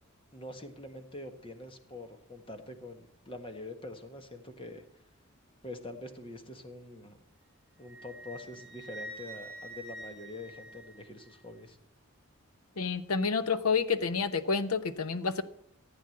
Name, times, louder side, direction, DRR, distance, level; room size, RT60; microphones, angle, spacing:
voice 1, 0.3-4.8 5.6-7.2 7.8-11.8, left 1 dB, 25° left, 7 dB, 1.5 m, -45 dB
Wind instrument woodwind instrument, 7.8-11.3, right 1 dB, 40° left, 4.4 m, -46 dB
voice 2, 12.8-15.4, left 5 dB, 85° left, 13 dB, 1.0 m, -29 dB
15.5 x 9.1 x 7.8 m, 0.70 s
head